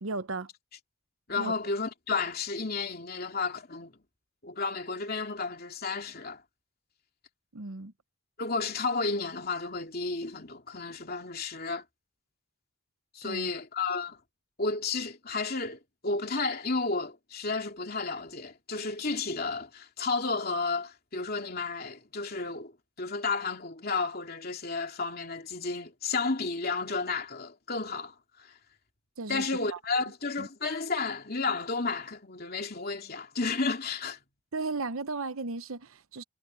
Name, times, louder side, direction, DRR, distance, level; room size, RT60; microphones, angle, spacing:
voice 1, 0.0-0.5 1.4-1.5 7.5-7.9 13.2-13.5 29.2-29.4 29.7-29.8 30.4-30.5 34.5-36.2, right 3 dB, 75° right, 1.0 m, -35 dB
voice 2, 1.3-3.9 4.4-6.4 8.4-11.8 13.1-14.2 14.6-22.7 23.0-28.5 29.3-34.2, left 4 dB, 45° left, 3.0 m, -32 dB
head